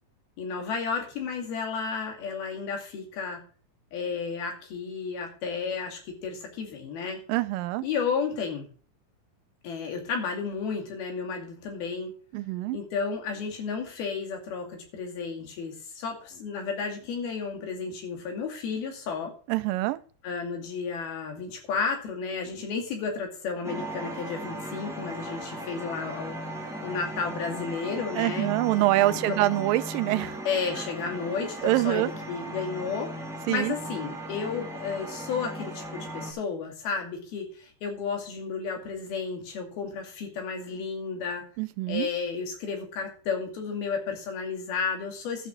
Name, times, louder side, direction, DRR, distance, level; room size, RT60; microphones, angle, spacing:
voice 1, 0.4-3.4 3.9-7.2 7.8-8.7 9.6-12.1 12.7-19.3 20.2-26.4 26.8-28.5 29.1-29.4 30.5-33.1 33.5-41.4 41.9-45.5, left 5 dB, 85° left, 4.3 m, -32 dB
voice 2, 7.3-7.8 12.3-12.8 19.5-20.0 28.2-30.4 31.6-32.1 33.5-33.7 41.6-42.1, right 17 dB, 80° right, 2.2 m, -25 dB
sound 1, 23.6-36.3, right 1 dB, ahead, 0.7 m, -37 dB
12.0 x 6.2 x 6.1 m
omnidirectional pair, 4.2 m